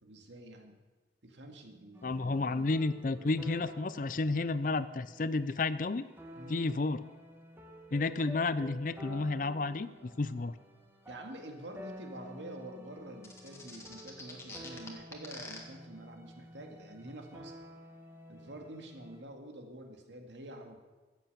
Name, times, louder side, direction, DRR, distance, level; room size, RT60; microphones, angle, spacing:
voice 1, 0.0-0.8 1.2-2.8 6.4-6.6 10.3-10.4 11.1-17.6 18.3-20.8, right 1 dB, 80° right, 3 dB, 2.0 m, -48 dB
sound 1, 1.9-19.2, equal, 10° right, 1.1 m, -51 dB
voice 2, 2.0-6.1 6.5-7.0 7.9-10.5, left 3 dB, 45° left, 15 dB, 0.5 m, -31 dB
sound 2, 13.2-15.6, left 3 dB, 15° left, 1.7 m, -45 dB
15.0 x 8.3 x 6.8 m, 1.2 s
head